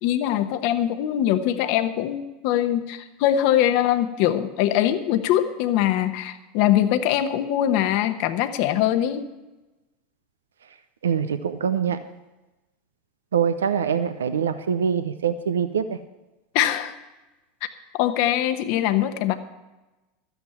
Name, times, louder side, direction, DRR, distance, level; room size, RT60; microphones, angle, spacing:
voice 1, 0.0-9.3 16.5-17.0 18.0-19.3, left 11 dB, 60° left, 8 dB, 1.0 m, -22 dB
voice 2, 11.0-12.0 13.3-16.0, right 7 dB, 90° right, 11 dB, 0.6 m, -24 dB
13.0 x 9.3 x 5.7 m, 1.1 s
hypercardioid pair, 90°, 0 cm